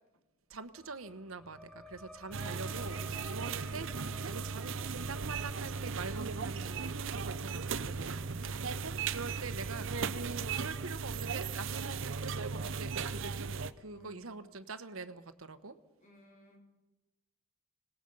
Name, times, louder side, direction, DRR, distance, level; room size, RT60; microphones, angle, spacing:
voice 1, 0.5-3.0 3.3-8.4 9.1-15.8, right 4 dB, 85° right, 11 dB, 1.1 m, -45 dB
sound 1, 0.7-11.9, equal, 5° left, 1.0 m, -55 dB
sound 2, 2.3-13.7, right 5 dB, 65° right, 0.8 m, -37 dB
voice 2, 2.4-4.4 8.4-9.8 10.1-10.5 13.9-14.5 16.0-16.6, left 1 dB, 40° left, 0 dB, 4.4 m, -59 dB
25.0 x 19.0 x 5.5 m, 1.1 s
head